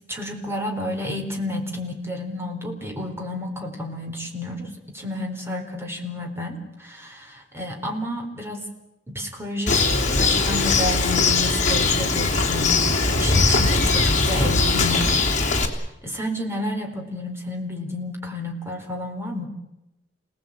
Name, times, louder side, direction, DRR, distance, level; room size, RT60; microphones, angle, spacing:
voice 1, 0.1-8.6 9.1-15.2 16.0-19.5, left 1 dB, 15° right, 2 dB, 4.5 m, -31 dB
Bird, 9.7-15.7, left 3 dB, 40° left, 3.4 m, -20 dB
28.5 x 18.5 x 8.9 m, 0.90 s
head